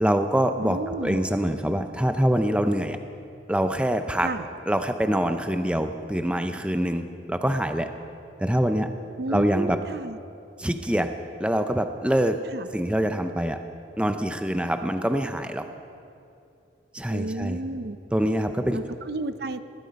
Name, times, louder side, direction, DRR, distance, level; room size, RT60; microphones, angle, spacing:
voice 1, 0.0-3.0 3.5-4.3 4.7-7.9 8.4-8.9 9.3-9.8 10.6-11.1 11.4-12.4 12.7-13.6 14.0-15.6 16.9-17.6 18.1-18.8, equal, 5° right, 7 dB, 0.5 m, -24 dB
voice 2, 0.6-1.3 4.2-4.5 9.2-10.2 12.5-12.7 17.1-18.0 18.7-19.6, right 2 dB, 55° right, 12 dB, 0.6 m, -32 dB
19.0 x 13.5 x 5.3 m, 2.6 s
head